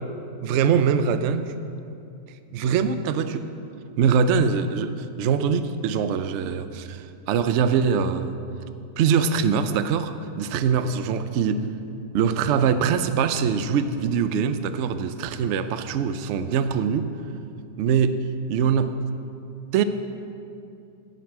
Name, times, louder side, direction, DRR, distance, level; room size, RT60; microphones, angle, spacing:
voice 1, 0.4-1.4 2.5-3.5 4.0-8.4 9.0-11.6 12.1-17.1 17.8-18.2 18.5-19.0 19.7-19.8, right 6 dB, 75° right, 10 dB, 0.6 m, -23 dB
11.5 x 9.4 x 4.7 m, 2.6 s
omnidirectional pair, 1.8 m